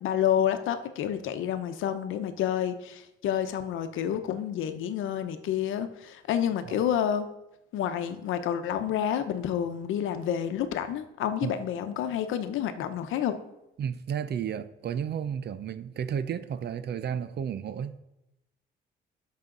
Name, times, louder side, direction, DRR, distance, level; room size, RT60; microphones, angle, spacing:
voice 1, 0.0-7.3 7.7-13.4, left 9 dB, 85° left, 0.9 m, -29 dB
voice 2, 13.8-18.0, right 8 dB, 55° right, 0.7 m, -32 dB
12.0 x 5.9 x 3.9 m
cardioid pair, 90°, 20 cm